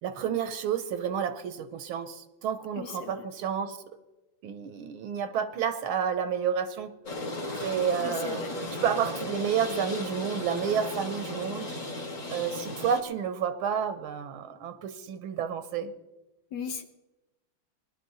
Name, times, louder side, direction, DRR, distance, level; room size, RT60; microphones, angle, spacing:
voice 1, 0.0-3.8 4.4-6.9 7.6-8.4 8.8-11.7 12.3-15.9, right 7 dB, 75° right, 1.7 m, -30 dB
voice 2, 2.8-3.1 8.0-8.6 16.5-16.8, left 6 dB, 65° left, 1.1 m, -37 dB
sound 1, 7.1-13.0, left 2 dB, 35° left, 2.7 m, -35 dB
20.0 x 11.5 x 4.1 m
omnidirectional pair, 2.3 m